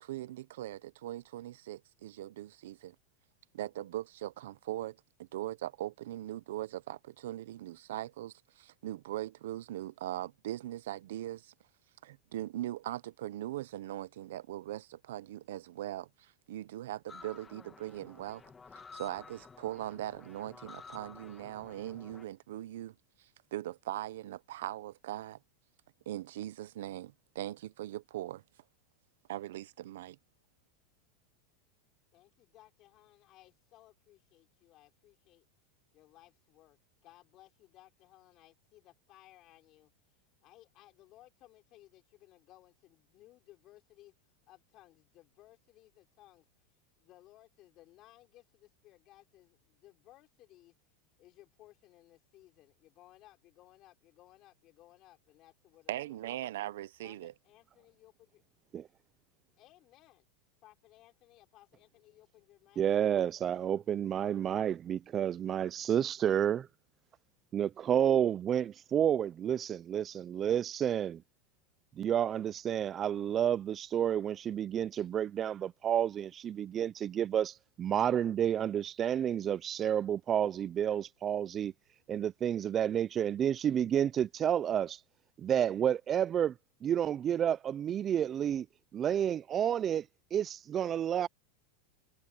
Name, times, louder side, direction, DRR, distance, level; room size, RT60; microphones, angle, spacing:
voice 1, 0.0-2.9 3.5-11.5 12.0-18.4 18.9-22.9 23.5-25.4 26.1-28.4 29.3-30.2 55.9-57.3, right 14 dB, 80° right, 0.8 m, -40 dB
sound 1, 17.1-22.3, left 5 dB, 15° left, 2.0 m, -52 dB
voice 2, 32.1-35.5 35.9-39.9 40.4-44.1 44.5-46.5 47.0-50.8 51.2-56.3 57.0-58.4 59.6-60.3 60.6-62.9, left 16 dB, 40° left, 5.5 m, -60 dB
voice 3, 62.8-66.7 67.5-71.2 72.0-81.7 82.1-85.0 85.4-86.5 86.8-88.7 88.9-90.1 90.3-91.3, right 9 dB, 25° right, 0.4 m, -30 dB
supercardioid pair, 135°, 0 cm